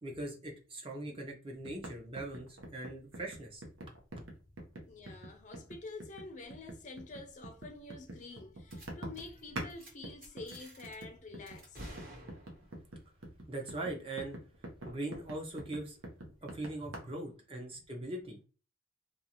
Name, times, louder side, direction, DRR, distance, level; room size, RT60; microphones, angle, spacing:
voice 1, 0.0-3.6 13.5-14.4 14.8-16.0 16.4-18.4, right 2 dB, 25° right, 0.5 m, -41 dB
sound 1, 1.7-9.7 10.0-17.0, right 1 dB, 85° right, 0.8 m, -45 dB
voice 2, 4.9-11.9 16.9-17.2 17.7-17.8, left 2 dB, 40° left, 0.4 m, -48 dB
sound 2, 8.7-8.9 9.1-9.4 9.7-9.9 10.2-11.0 11.5-12.8, right 1 dB, 45° right, 1.0 m, -50 dB
2.5 x 2.4 x 2.8 m
head